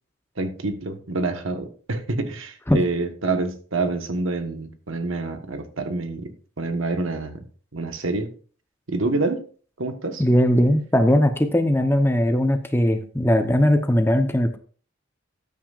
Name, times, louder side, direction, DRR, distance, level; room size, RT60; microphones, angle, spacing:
voice 1, 0.4-6.3 6.6-7.4 7.7-8.3 8.9-9.4 9.8-10.2, right 2 dB, 75° right, 7 dB, 1.4 m, -27 dB
voice 2, 10.2-14.6, equal, 10° left, 7 dB, 0.8 m, -19 dB
13.5 x 9.1 x 2.5 m, 0.42 s
head